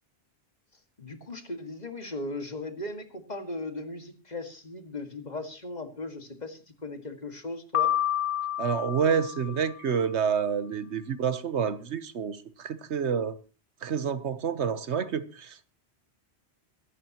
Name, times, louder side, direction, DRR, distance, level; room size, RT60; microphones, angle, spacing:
voice 1, 1.0-7.9, left 2 dB, 40° left, 2.0 m, -38 dB
Piano, 7.7-9.9, left 11 dB, 85° left, 1.7 m, -29 dB
voice 2, 8.6-13.4 13.8-15.7, right 7 dB, 85° right, 1.3 m, -28 dB
23.5 x 11.0 x 3.0 m
omnidirectional pair, 1.1 m